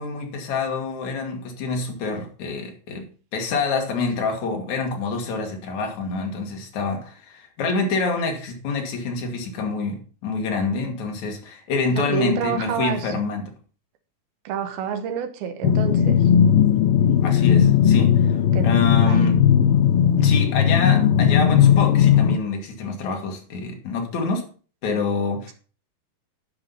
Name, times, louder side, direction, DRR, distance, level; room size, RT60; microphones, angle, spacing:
voice 1, 0.0-3.1 3.3-13.5 17.2-18.4 18.6-19.4 20.2-24.5 24.8-25.5, left 4 dB, 55° left, 2.8 m, -26 dB
voice 2, 12.0-13.1 14.4-16.3 18.5-18.7 19.0-19.3, right 8 dB, 80° right, 3.0 m, -28 dB
sound 1, 15.6-22.4, left 9 dB, 90° left, 2.6 m, -17 dB
10.5 x 5.5 x 5.4 m
omnidirectional pair, 4.3 m